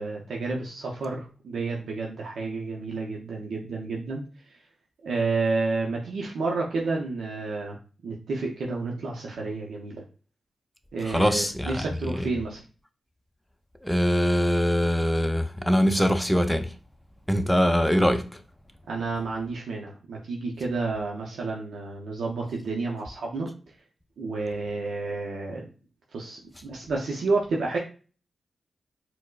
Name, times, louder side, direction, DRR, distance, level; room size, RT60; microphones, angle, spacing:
voice 1, 0.0-4.2 4.5-4.6 5.0-7.8 8.0-10.0 10.9-12.6 18.9-23.5 24.2-25.7 26.1-27.8, right 3 dB, 80° right, 0.5 m, -30 dB
voice 2, 11.1-11.7 12.2-12.3 13.8-16.7 17.3-18.3, equal, 5° left, 0.5 m, -22 dB
4.3 x 2.0 x 2.3 m
cardioid pair, 50°, 0 cm